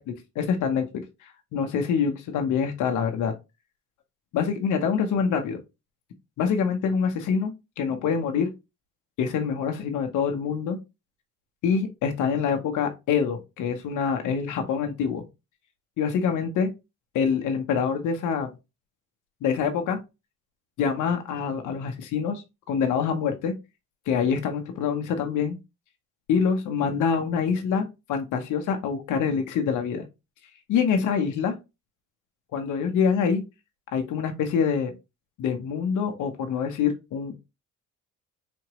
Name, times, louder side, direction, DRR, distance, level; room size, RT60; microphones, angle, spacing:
voice 1, 0.3-3.3 4.3-5.6 6.4-8.5 9.2-10.8 11.6-15.2 16.0-16.7 17.1-18.5 19.4-20.0 20.8-23.5 24.1-25.6 26.3-30.0 30.7-31.6 32.5-33.4 33.9-34.9 35.4-37.3, left 6 dB, 85° left, 5 dB, 1.0 m, -25 dB
4.3 x 2.9 x 2.9 m, 0.24 s
cardioid pair, 90°, 30 cm